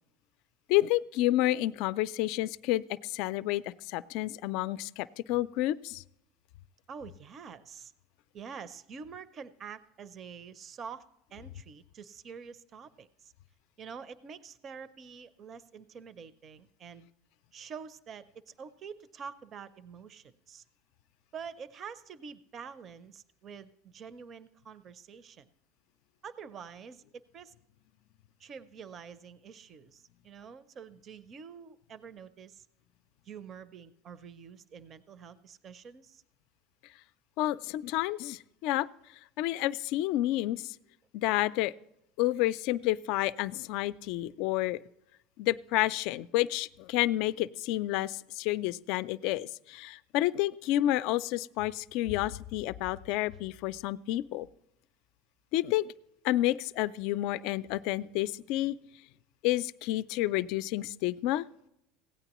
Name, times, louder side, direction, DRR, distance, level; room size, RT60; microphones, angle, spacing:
voice 1, 0.7-6.0 37.4-38.9 39.4-40.8 41.1-41.7 42.2-44.8 45.4-54.5 55.5-55.9 56.2-58.7 59.4-61.5, left 15 dB, 65° left, 16 dB, 0.3 m, -30 dB
voice 2, 6.9-7.9 8.3-11.0 11.3-13.3 13.8-17.1 17.5-20.6 21.3-25.5 26.2-27.5 28.4-32.6 33.2-36.2, right 6 dB, 35° right, 14 dB, 0.5 m, -47 dB
16.5 x 9.0 x 3.0 m, 0.81 s
supercardioid pair, 130°, 0 cm